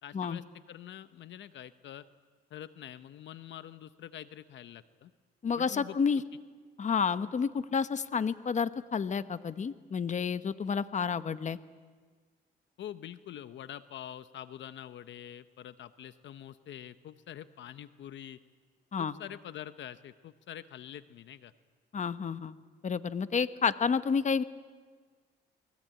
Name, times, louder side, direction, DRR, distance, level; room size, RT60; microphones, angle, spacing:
voice 1, 0.0-2.0 2.5-5.1 5.6-6.2 12.8-18.4 19.0-21.5, left 10 dB, 70° left, 13 dB, 0.9 m, -45 dB
voice 2, 5.4-6.2 6.8-11.6 18.9-19.1 21.9-22.5 22.8-24.4, left 6 dB, 35° left, 13 dB, 1.0 m, -30 dB
29.0 x 21.0 x 8.9 m, 1.5 s
cardioid pair, 90°, 20 cm